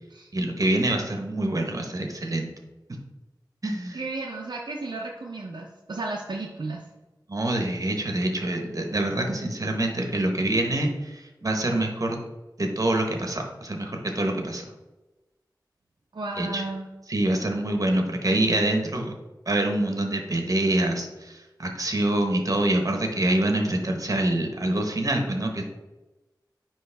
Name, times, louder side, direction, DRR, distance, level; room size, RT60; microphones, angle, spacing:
voice 1, 0.3-2.5 3.6-4.0 7.3-12.2 12.6-14.6 16.4-16.6 17.1-19.1 19.5-25.6, right 1 dB, 50° right, 3 dB, 1.0 m, -25 dB
voice 2, 3.9-6.8 16.1-16.9, right 2 dB, 70° right, -2 dB, 0.6 m, -33 dB
9.3 x 3.1 x 3.4 m, 1.1 s
wide cardioid pair, 75°, 8 cm